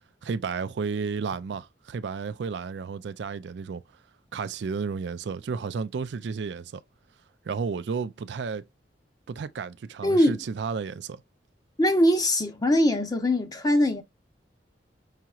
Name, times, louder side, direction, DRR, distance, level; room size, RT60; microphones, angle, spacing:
voice 1, 0.2-3.8 4.3-6.8 7.5-8.6 9.3-11.2, right 5 dB, 70° right, 0.4 m, -32 dB
voice 2, 10.0-10.4 11.8-14.0, left 1 dB, 20° left, 0.8 m, -22 dB
5.7 x 2.9 x 2.4 m
head